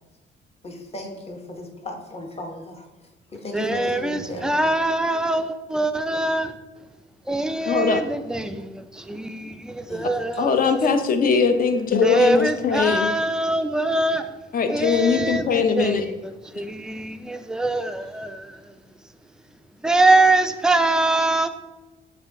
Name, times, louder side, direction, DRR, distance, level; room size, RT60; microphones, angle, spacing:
voice 1, 0.6-4.6 9.9-10.1, left 2 dB, 30° left, 2 dB, 0.9 m, -36 dB
voice 2, 3.5-6.5 7.3-10.9 12.0-14.3 14.7-16.0 16.5-18.6 19.8-21.5, right 2 dB, 5° right, 8 dB, 0.3 m, -23 dB
voice 3, 7.7-8.0 10.4-13.1 14.5-16.1, left 5 dB, 45° left, 7 dB, 0.6 m, -21 dB
5.9 x 2.5 x 3.6 m, 1.1 s
cardioid pair, 90°, 20 cm